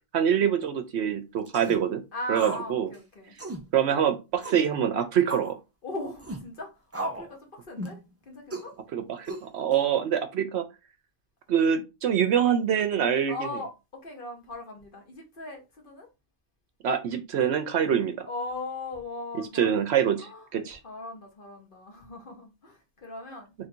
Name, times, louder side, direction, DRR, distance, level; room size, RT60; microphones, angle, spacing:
voice 1, 0.1-2.0 2.3-2.9 3.7-5.6 8.9-10.7 11.5-13.4 16.8-18.3 19.4-20.8, right 8 dB, 65° right, 0.8 m, -25 dB
sound 1, 1.5-1.8 2.4-2.7 2.9-3.0 3.4-3.6 4.4-4.7 5.3-5.5 6.2-6.4 6.9-7.3 7.8-8.0 8.5-8.7 9.3-9.7, right 1 dB, 25° right, 0.3 m, -35 dB
voice 2, 2.1-3.3 5.8-8.0 8.3-8.7 13.3-13.7 14.0-16.1 18.3-19.9 20.2-20.5 20.8-23.5, left 2 dB, 45° left, 1.1 m, -38 dB
3.2 x 2.6 x 4.3 m
omnidirectional pair, 1.3 m